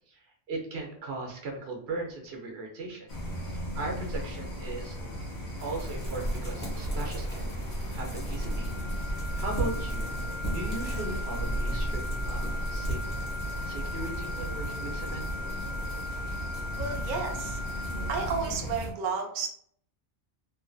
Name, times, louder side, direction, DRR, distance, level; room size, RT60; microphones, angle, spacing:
voice 1, 0.1-3.1 3.5-5.0 5.6-7.6 7.9-8.7 9.1-10.1 10.5-13.0 13.6-15.3, right 2 dB, 80° right, 1 dB, 1.0 m, -38 dB
sound 1, 3.1-18.8, equal, 75° left, 1.3 m, -38 dB
sound 2, 5.6-18.9, right 1 dB, 45° left, 1.2 m, -35 dB
sound 3, 8.3-18.3, left 3 dB, 30° left, 0.8 m, -39 dB
voice 2, 16.8-19.5, right 5 dB, 60° right, 2 dB, 0.6 m, -33 dB
3.0 x 2.2 x 2.5 m, 0.62 s
omnidirectional pair, 1.1 m